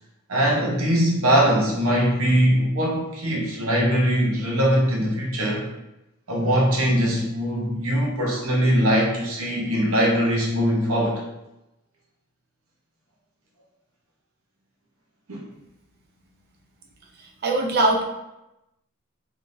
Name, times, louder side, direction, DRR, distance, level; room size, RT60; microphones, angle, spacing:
voice 1, 0.3-5.7 6.3-11.2 15.3-15.4, equal, 85° right, -2 dB, 1.0 m, -21 dB
voice 2, 17.2-18.0, right 2 dB, 50° right, 0 dB, 0.7 m, -22 dB
3.6 x 3.3 x 2.7 m, 0.91 s
head